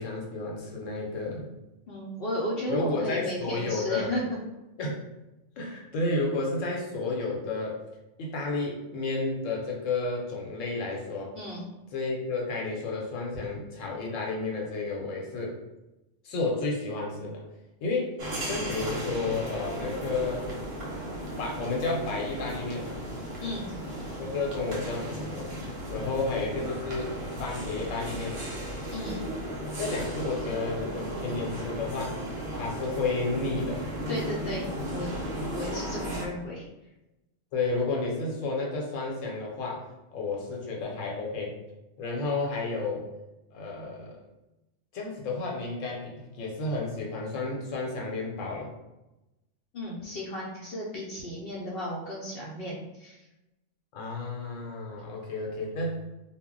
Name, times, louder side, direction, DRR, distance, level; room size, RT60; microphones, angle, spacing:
voice 1, 0.0-1.5 2.7-4.1 4.8-5.0 5.6-7.8 8.2-11.3 11.9-15.6 16.2-17.4 17.8-18.2 18.4-20.4 21.4-23.1 24.2-25.5 25.9-28.4 29.8-32.2 32.5-33.8 37.5-39.8 40.1-41.5 42.0-43.1 43.5-44.2 44.9-48.7 53.9-56.0, left 3 dB, 80° left, -1 dB, 1.0 m, -31 dB
voice 2, 1.9-4.2 11.3-11.7 23.4-23.7 28.9-29.2 34.1-35.1 35.5-36.7 49.7-53.2, left 1 dB, 60° left, -4 dB, 0.7 m, -34 dB
sound 1, 18.2-36.2, right 1 dB, 50° right, 0.8 m, -35 dB
2.2 x 2.0 x 3.6 m, 0.98 s
omnidirectional pair, 1.3 m